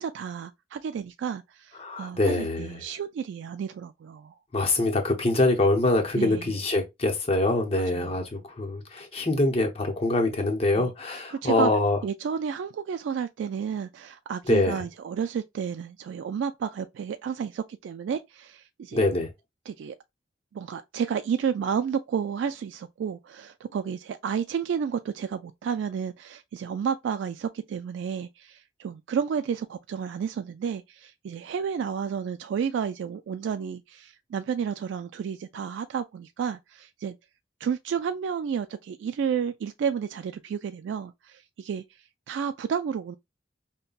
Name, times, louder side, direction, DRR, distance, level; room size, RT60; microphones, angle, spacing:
voice 1, 0.0-4.3 6.1-6.6 7.9-8.2 10.7-11.7 12.0-19.1 19.7-20.0 20.5-37.2 37.6-41.8 42.3-43.1, right 7 dB, 90° right, 0.3 m, -31 dB
voice 2, 1.8-2.8 4.5-12.0 14.5-14.8 18.9-19.3, left 2 dB, 35° left, 0.8 m, -24 dB
5.3 x 2.2 x 2.4 m
head